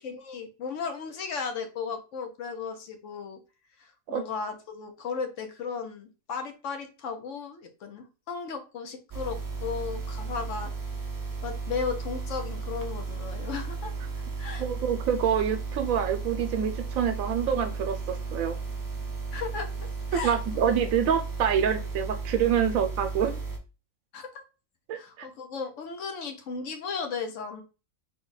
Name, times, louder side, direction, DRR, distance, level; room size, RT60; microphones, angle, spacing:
voice 1, 0.0-3.4 3.8-10.7 11.4-14.6 19.3-19.7 20.1-20.4 20.6-20.8 24.1-24.4 24.9-27.6, left 5 dB, 65° left, 6 dB, 1.0 m, -35 dB
sound 1, 9.1-23.6, right 4 dB, 25° right, 0.4 m, -34 dB
voice 2, 14.6-18.6 20.2-23.4 24.9-25.3, right 8 dB, 80° right, 8 dB, 1.0 m, -26 dB
4.0 x 2.3 x 3.8 m, 0.31 s
omnidirectional pair, 1.4 m